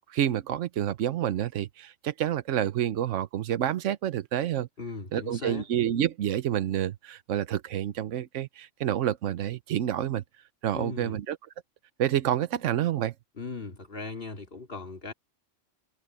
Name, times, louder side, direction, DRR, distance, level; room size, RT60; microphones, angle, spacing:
voice 1, 0.1-4.7 5.1-10.2 10.6-11.4 12.0-13.1, right 11 dB, 80° right, 1.1 m, -28 dB
voice 2, 4.8-5.7 10.7-11.2 13.4-15.1, left 3 dB, 50° left, 2.6 m, -38 dB
omnidirectional pair, 1.3 m